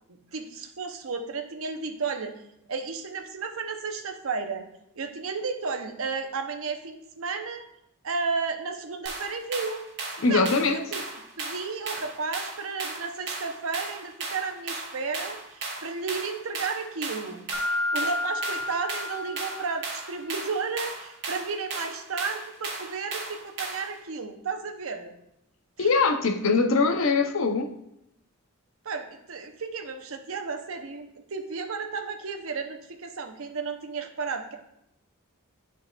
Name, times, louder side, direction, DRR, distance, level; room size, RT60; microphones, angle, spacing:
voice 1, 0.1-2.3 2.7-4.7 4.9-7.6 8.0-9.8 10.3-11.0 11.4-17.4 17.9-25.1 25.8-25.9 28.8-34.6, right 4 dB, 75° right, 5 dB, 0.7 m, -33 dB
sound 1, 9.1-24.0, right 3 dB, 55° right, 1.2 m, -36 dB
voice 2, 10.2-10.8 25.8-27.7, left 4 dB, 70° left, 5 dB, 0.6 m, -22 dB
Mallet percussion, 17.5-20.1, left 2 dB, 10° right, 1.5 m, -31 dB
11.0 x 4.1 x 2.3 m, 0.81 s
head